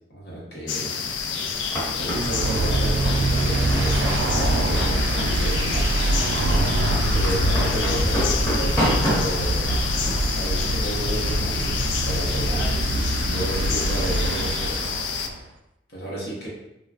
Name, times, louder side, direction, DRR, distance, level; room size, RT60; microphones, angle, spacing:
voice 1, 0.1-0.9 2.0-6.2 6.8-9.7 10.3-14.8 15.9-16.5, right 1 dB, 65° left, -5 dB, 0.9 m, -33 dB
sound 1, 0.7-15.3, left 6 dB, 80° left, 0.3 m, -29 dB
sound 2, 1.1-11.6, equal, 20° left, 1.0 m, -30 dB
sound 3, 1.9-15.4, right 1 dB, 85° right, 0.3 m, -24 dB
3.1 x 2.3 x 2.4 m, 0.89 s
head